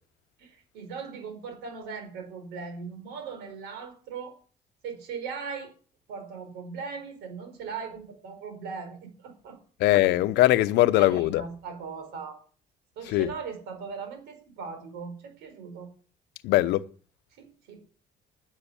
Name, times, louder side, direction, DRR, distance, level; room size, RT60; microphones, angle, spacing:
voice 1, 0.4-4.4 4.8-5.7 6.1-9.6 10.9-12.4 12.9-15.9 17.4-17.8, right 5 dB, 90° right, 4.9 m, -39 dB
voice 2, 9.8-11.4 13.1-13.3 16.4-16.8, left 16 dB, 90° left, 0.8 m, -21 dB
11.0 x 10.0 x 7.0 m
cardioid pair, 110°, 17 cm